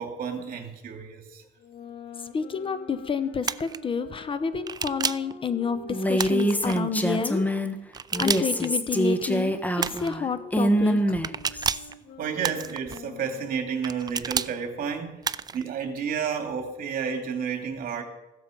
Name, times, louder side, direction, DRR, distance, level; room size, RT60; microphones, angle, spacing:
voice 1, 0.0-1.4 12.2-15.2 15.5-18.0, right 6 dB, 55° right, 4 dB, 2.8 m, -31 dB
sound 1, 1.6-7.4 8.1-13.6, left 4 dB, 70° left, 2.5 m, -45 dB
voice 2, 2.3-7.5 8.2-11.2, left 5 dB, 30° left, 13 dB, 0.8 m, -29 dB
sound 2, 3.4-3.8 4.7-5.3 6.2-6.8 7.9-8.7 9.8-10.2 11.2-11.9 12.4-13.0 13.8-14.5 15.2-15.6, right 6 dB, 25° right, 0.4 m, -30 dB
Female speech woman speaking, 5.9-7.8 8.1-11.9, equal, 10° left, 1.3 m, -25 dB
15.5 x 13.0 x 5.3 m, 1.0 s
cardioid pair, 110°, 17 cm